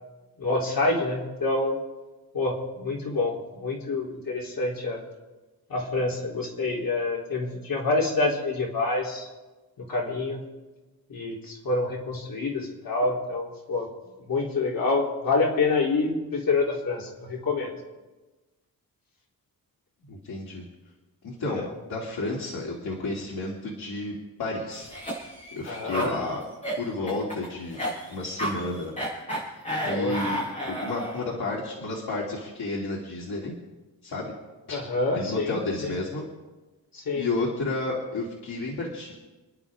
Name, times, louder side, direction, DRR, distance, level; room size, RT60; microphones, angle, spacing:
voice 1, 0.4-1.7 2.3-3.3 3.6-5.0 5.7-9.3 9.8-10.4 11.1-13.9 14.3-17.7 21.5-21.6 25.6-26.2 29.8-30.2 34.7-35.6 35.8-36.0 36.9-37.3, left 3 dB, 65° left, -2 dB, 3.5 m, -27 dB
voice 2, 20.1-20.6 21.2-24.9 25.5-26.4 26.8-27.8 28.1-28.9 29.8-30.4 30.7-33.6 34.0-34.3 34.7-34.8 35.1-36.3 37.1-39.1, left 2 dB, 85° left, -4 dB, 2.9 m, -31 dB
Cough, 24.7-31.3, equal, 20° left, 6.4 m, -32 dB
30.0 x 10.5 x 3.7 m, 1.2 s
wide cardioid pair, 165°, 37 cm